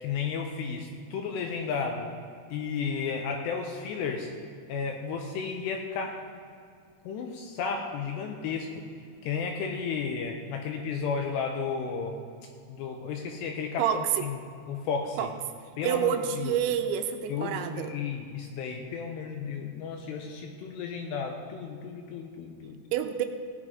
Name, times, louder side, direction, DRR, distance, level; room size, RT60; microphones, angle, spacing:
voice 1, 0.0-2.1 2.5-4.3 4.7-6.1 7.0-8.8 9.2-12.2 12.7-14.4 14.7-15.3 15.8-16.6 17.3-22.8, left 5 dB, 80° left, 3 dB, 2.6 m, -33 dB
voice 2, 13.8-14.2 15.2-15.3 15.8-17.9 22.9-23.3, right 9 dB, 85° right, 7 dB, 2.9 m, -28 dB
17.0 x 9.8 x 3.7 m, 2.4 s
omnidirectional pair, 5.4 m